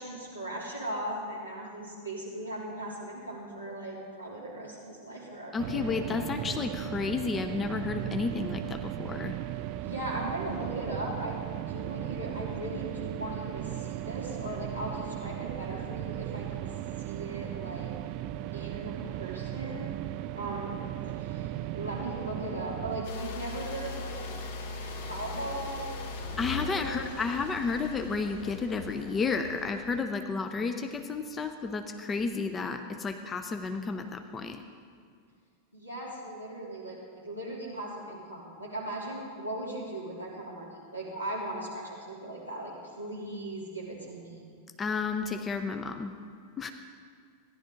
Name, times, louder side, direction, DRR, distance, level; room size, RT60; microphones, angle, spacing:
voice 1, 0.0-6.6 9.8-11.4 11.7-16.7 17.0-17.9 18.5-20.0 20.3-20.8 21.1-24.4 24.9-26.0 26.4-27.1 35.7-44.4, right 1 dB, 90° left, -6 dB, 3.1 m, -38 dB
voice 2, 5.5-9.3 26.4-34.6 44.8-46.1 46.6-46.7, left 4 dB, 20° left, 7 dB, 0.6 m, -32 dB
sound 1, 5.6-23.1, right 13 dB, 45° right, 0.3 m, -37 dB
sound 2, 23.0-30.0, left 3 dB, 55° left, 1.1 m, -39 dB
15.0 x 11.0 x 3.8 m, 2.1 s
figure-of-eight pair, 90°, 0 cm